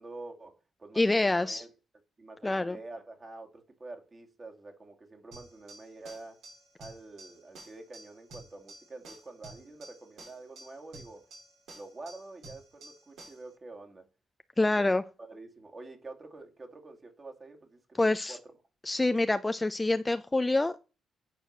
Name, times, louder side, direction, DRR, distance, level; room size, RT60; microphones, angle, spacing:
voice 1, 0.0-1.7 2.2-6.4 6.8-11.3 11.7-14.1 14.8-14.9 15.2-18.4, right 2 dB, 35° right, 2.3 m, -47 dB
voice 2, 1.0-1.6 2.4-2.8 14.6-15.0 18.0-18.4 18.9-20.8, left 2 dB, 15° left, 0.6 m, -26 dB
sound 1, 5.3-13.5, right 2 dB, 75° right, 5.7 m, -51 dB
9.0 x 4.7 x 6.6 m
supercardioid pair, 70°, 0 cm